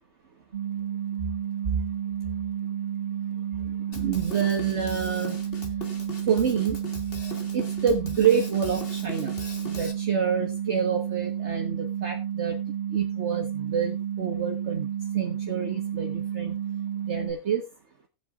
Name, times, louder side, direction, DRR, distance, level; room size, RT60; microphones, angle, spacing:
sound 1, 0.5-17.3, right 9 dB, 35° right, 1.5 m, -31 dB
Drum kit, 3.9-9.9, left 2 dB, 40° left, 1.9 m, -40 dB
voice 1, 3.9-5.4 6.3-6.8 7.5-9.3 9.7-12.6 12.9-14.9 15.1-16.5 17.1-17.6, right 7 dB, 50° right, 2 dB, 1.5 m, -27 dB
18.5 x 8.0 x 2.4 m, 0.24 s
omnidirectional pair, 1.5 m